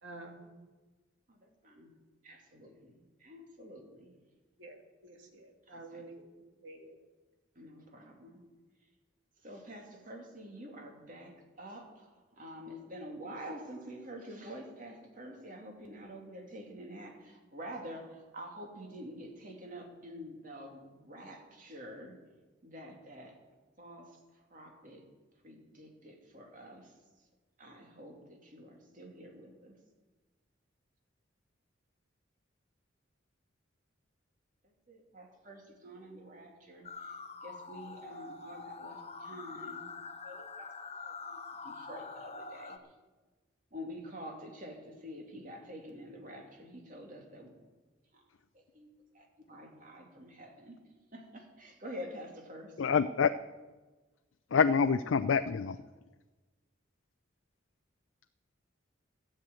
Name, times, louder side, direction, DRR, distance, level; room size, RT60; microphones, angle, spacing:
voice 1, 0.0-0.5 4.6-6.2 6.6-7.0, right 2 dB, 70° right, 2.3 m, -49 dB
voice 2, 1.3-1.9 2.2-4.1 5.7-6.1 7.5-8.4 9.4-22.2 22.6-23.3 23.8-25.0 25.4-26.9 27.6-29.8 34.6-37.2 37.4-39.9 40.2-40.7 41.0-42.8 43.7-47.5 48.1-48.2 48.5-48.9 49.1-50.8 51.1-52.9, equal, 45° right, 2.6 m, -48 dB
sound 1, 36.8-42.8, left 4 dB, 30° left, 0.7 m, -45 dB
voice 3, 52.8-53.3 54.5-55.8, left 6 dB, 80° left, 0.4 m, -26 dB
13.5 x 7.8 x 9.0 m
head